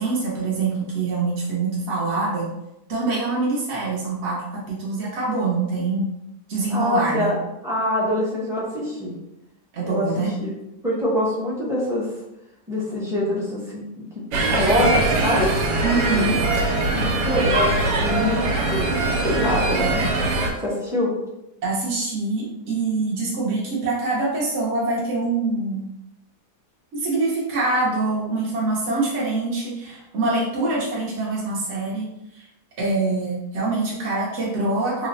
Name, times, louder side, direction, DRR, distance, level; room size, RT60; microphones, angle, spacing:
voice 1, 0.0-2.5 2.9-6.1 6.5-7.3 9.7-10.3 15.8-16.4 21.6-25.8 26.9-32.1 32.8-35.1, right 3 dB, 55° right, -6 dB, 0.9 m, -24 dB
voice 2, 6.7-7.4 7.6-9.1 9.9-10.5 10.8-12.1 12.7-13.9 14.1-14.2 14.5-15.5 16.9-20.2 20.6-21.1, left 1 dB, 5° right, -7 dB, 0.4 m, -24 dB
sound 1, 14.3-20.5, right 2 dB, 90° right, 1.2 m, -22 dB
3.1 x 2.0 x 3.8 m, 0.88 s
omnidirectional pair, 1.8 m